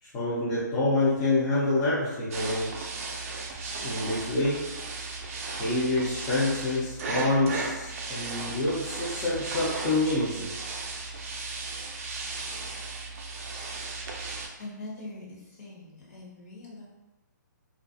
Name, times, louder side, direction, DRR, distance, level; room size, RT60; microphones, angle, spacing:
voice 1, 0.0-2.7 3.8-4.7 5.6-10.5, left 2 dB, 20° left, -9 dB, 0.4 m, -27 dB
sound 1, 2.3-14.5, right 3 dB, 45° right, 0.4 m, -36 dB
voice 2, 14.6-15.2 15.6-16.8, left 2 dB, 50° left, -5 dB, 1.0 m, -42 dB
2.4 x 2.2 x 2.5 m, 1.0 s
hypercardioid pair, 155°, 10 cm